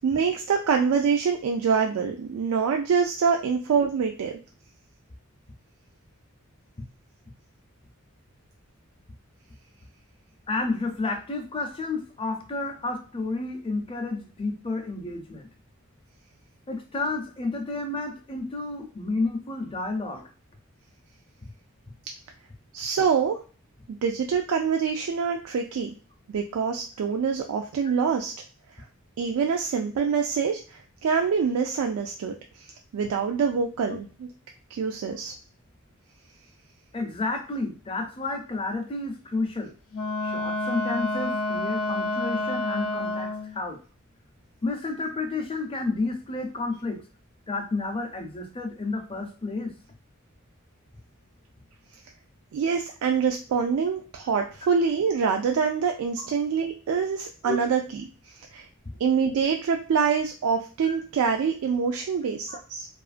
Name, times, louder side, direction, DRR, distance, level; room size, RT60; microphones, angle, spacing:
voice 1, 0.0-4.4 22.7-23.4 23.9-25.9 26.3-28.3 28.7-28.8 29.2-34.3 34.7-35.3 52.5-57.8 58.2-58.7 59.0-62.9, right 6 dB, 85° right, 3 dB, 0.3 m, -25 dB
voice 2, 10.5-15.5 16.7-20.3 21.4-21.5 36.9-39.7 40.2-43.8 44.6-47.0 47.5-49.7 57.4-57.6 60.9-61.0 62.5-62.6, left 3 dB, 25° left, 4 dB, 0.5 m, -31 dB
Wind instrument woodwind instrument, 39.9-43.6, left 2 dB, 80° left, 0.5 m, -29 dB
2.8 x 2.4 x 2.4 m, 0.38 s
head